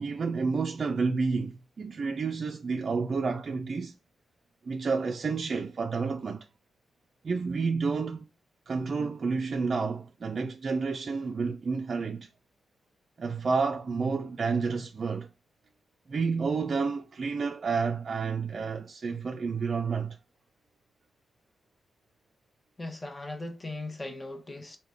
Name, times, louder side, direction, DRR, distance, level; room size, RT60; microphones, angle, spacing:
voice 1, 0.0-3.9 4.7-6.5 7.2-8.3 8.7-12.3 13.2-15.3 16.1-20.2, right 4 dB, 50° right, 0.4 m, -30 dB
voice 2, 22.8-24.8, left 2 dB, 20° left, 0.8 m, -38 dB
3.6 x 2.2 x 3.3 m
cardioid pair, 90°, 0 cm